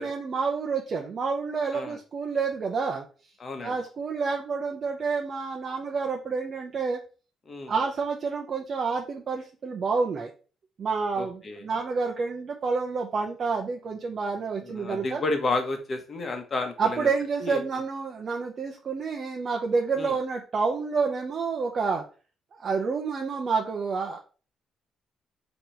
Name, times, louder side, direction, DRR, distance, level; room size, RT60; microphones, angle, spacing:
voice 1, 0.0-3.0 3.6-7.0 7.7-10.3 10.8-15.2 16.8-22.0 22.6-24.2, right 4 dB, 50° right, 1 dB, 0.6 m, -29 dB
voice 2, 3.4-3.7 7.5-7.7 11.2-11.6 14.6-17.1 17.4-17.6 19.9-20.1, left 3 dB, 40° left, 4 dB, 1.1 m, -31 dB
3.8 x 3.0 x 4.4 m, 0.36 s
cardioid pair, 90°, 0 cm